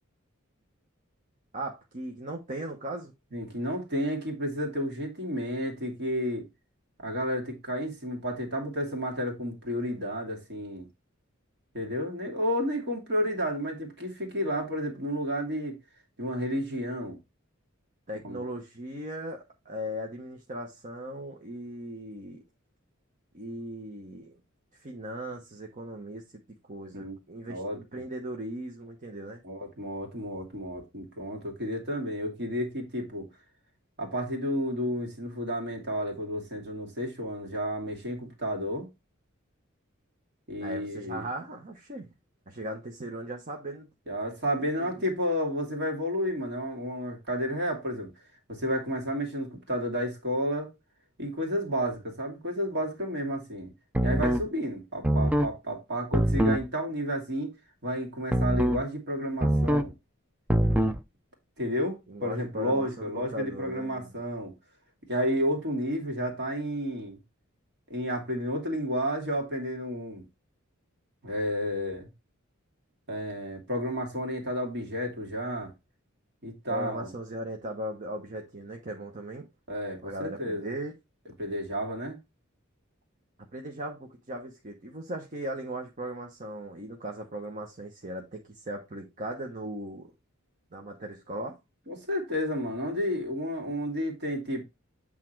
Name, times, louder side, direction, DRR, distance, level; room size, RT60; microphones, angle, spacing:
voice 1, 1.5-3.1 18.1-22.4 23.3-24.4 24.7-29.4 40.6-42.1 42.5-43.9 44.8-45.0 62.1-64.1 76.7-79.5 80.0-80.9 83.5-90.1 90.7-91.6, right 1 dB, 40° right, 1.0 m, -38 dB
voice 2, 3.3-6.5 7.0-10.9 11.7-15.8 16.2-17.2 18.2-18.4 26.9-27.1 27.5-27.8 29.4-33.3 34.0-38.9 40.5-41.2 44.1-48.1 48.5-50.7 51.2-53.7 54.0-57.5 57.8-59.9 61.6-64.5 65.1-67.2 67.9-70.2 71.2-72.1 73.1-75.7 76.4-77.1 79.7-80.7 81.4-82.2 91.9-94.6, equal, 55° right, 2.5 m, -31 dB
sound 1, 53.9-54.5 55.0-55.5 56.1-56.7 58.3-58.8 59.4-59.9 60.5-61.0, right 1 dB, 5° right, 0.5 m, -24 dB
8.4 x 3.7 x 4.5 m
head